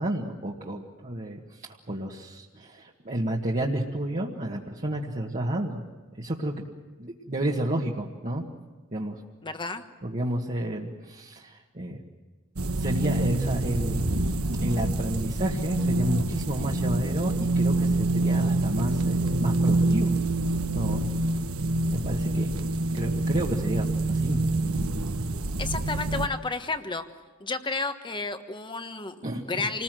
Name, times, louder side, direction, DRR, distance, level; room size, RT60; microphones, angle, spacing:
voice 1, 0.0-5.8 6.2-6.6 7.0-8.4 8.9-9.2 10.0-12.0 12.8-14.2 14.6-20.2 20.7-21.2 21.9-22.5 22.9-24.4 29.2-29.7, right 1 dB, 35° right, -2 dB, 1.7 m, -31 dB
voice 2, 9.4-9.8 25.6-27.0 27.4-29.1 29.5-29.8, left 3 dB, 20° left, 8 dB, 1.3 m, -31 dB
sound 1, 12.6-26.3, right 2 dB, 75° right, 1.4 m, -26 dB
28.0 x 20.0 x 7.7 m, 1.3 s
head